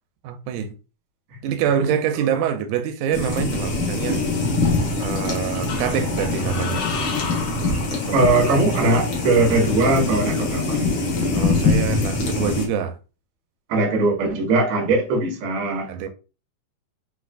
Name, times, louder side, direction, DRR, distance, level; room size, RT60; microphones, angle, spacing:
voice 1, 0.2-0.7 1.4-4.2 5.0-6.9 7.9-8.3 11.3-13.0 15.9-16.1, right 8 dB, 90° right, 2.1 m, -25 dB
voice 2, 1.8-2.3 8.1-11.1 13.7-16.1, right 2 dB, 55° right, 2.0 m, -21 dB
sound 1, 3.1-12.7, left 3 dB, 55° left, 1.5 m, -23 dB
sound 2, 4.0-4.8 5.7-8.6, left 5 dB, 70° left, 1.5 m, -34 dB
4.8 x 4.0 x 2.4 m
omnidirectional pair, 3.5 m